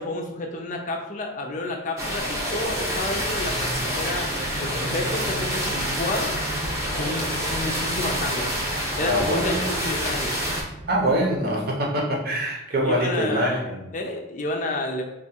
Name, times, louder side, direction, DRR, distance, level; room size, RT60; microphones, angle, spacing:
voice 1, 0.0-4.3 4.6-6.3 7.0-8.5 9.0-10.4 12.8-15.0, left 2 dB, 35° left, 2 dB, 0.5 m, -30 dB
sound 1, 2.0-10.6, equal, 15° right, 0.7 m, -27 dB
sound 2, 2.2-11.3, right 1 dB, 75° right, 0.9 m, -38 dB
voice 2, 9.0-9.7 10.9-13.8, equal, 45° right, 0 dB, 0.8 m, -24 dB
3.7 x 2.4 x 4.2 m, 0.95 s
head